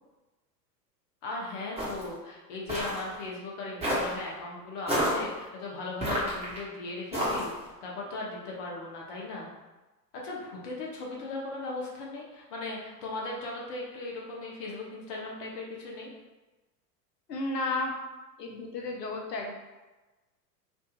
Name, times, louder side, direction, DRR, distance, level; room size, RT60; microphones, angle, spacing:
voice 1, 1.2-9.5 10.1-16.1, left 2 dB, 50° left, -3 dB, 1.0 m, -38 dB
sound 1, 1.8-2.1 2.7-3.0 3.8-4.2 4.9-5.2 6.0-6.6 7.1-7.6, equal, 15° right, 1.2 m, -29 dB
voice 2, 17.3-17.9 18.4-19.6, left 2 dB, 80° left, 2 dB, 0.7 m, -32 dB
3.5 x 2.6 x 2.4 m, 1.1 s
figure-of-eight pair, 90°, 48 cm